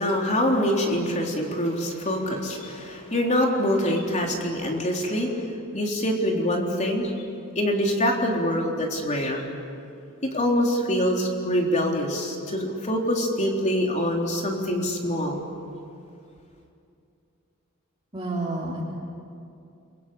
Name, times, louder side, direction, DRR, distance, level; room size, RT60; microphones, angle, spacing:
voice 1, 0.0-5.5 5.7-7.1 7.6-9.5 10.3-15.4, equal, 35° left, 0 dB, 3.9 m, -25 dB
voice 2, 18.1-18.8, right 2 dB, 20° right, -7 dB, 4.3 m, -29 dB
29.5 x 23.0 x 8.6 m, 2.5 s
head